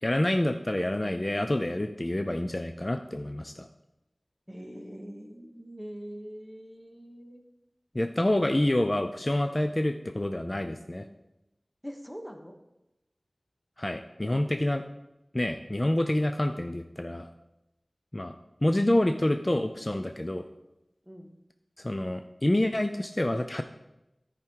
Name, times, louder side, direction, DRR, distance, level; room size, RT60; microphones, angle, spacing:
voice 1, 0.0-3.7 7.9-11.1 13.8-14.8 15.3-17.3 18.1-18.3 18.6-20.4 21.8-23.6, left 1 dB, 30° left, 8 dB, 0.5 m, -27 dB
voice 2, 4.5-7.4 11.8-12.6 21.1-21.3, equal, 5° left, 4 dB, 1.3 m, -43 dB
13.5 x 5.0 x 4.6 m, 0.93 s
wide cardioid pair, 50°, 0 cm